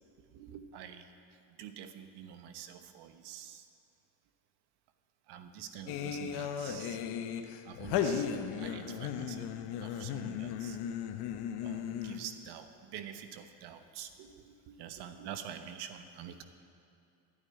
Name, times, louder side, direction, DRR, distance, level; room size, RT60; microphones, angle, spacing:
voice 1, 0.2-1.1 1.6-3.7 5.3-7.0 7.6-9.5 9.8-10.8 11.6-16.4, right 9 dB, 60° right, 8 dB, 1.1 m, -46 dB
sound 1, 5.9-12.4, left 8 dB, 55° left, 1.0 m, -36 dB
11.0 x 9.0 x 9.9 m, 2.5 s
cardioid pair, 135°, 45 cm